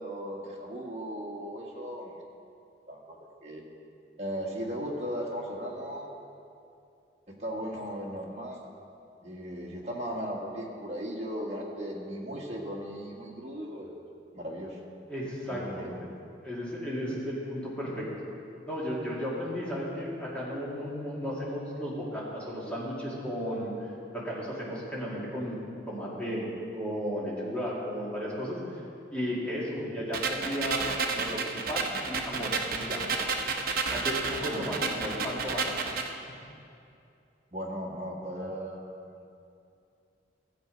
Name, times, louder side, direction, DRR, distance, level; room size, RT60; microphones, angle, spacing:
voice 1, 0.0-2.1 2.9-3.2 3.4-3.6 4.2-6.1 7.4-8.6 9.2-13.9 14.3-14.8 15.5-16.1 29.7-29.9 34.4-34.6 37.5-39.3, equal, 35° right, -2 dB, 1.6 m, -37 dB
voice 2, 15.1-16.1 16.4-18.1 18.7-23.7 24.1-25.6 25.9-26.5 26.7-28.8 29.1-33.1 33.9-35.8 36.1-36.2, equal, 5° left, -7 dB, 2.3 m, -34 dB
sound 1, 30.1-36.1, right 4 dB, 50° right, 0.8 m, -31 dB
13.5 x 7.8 x 5.1 m, 2.6 s
head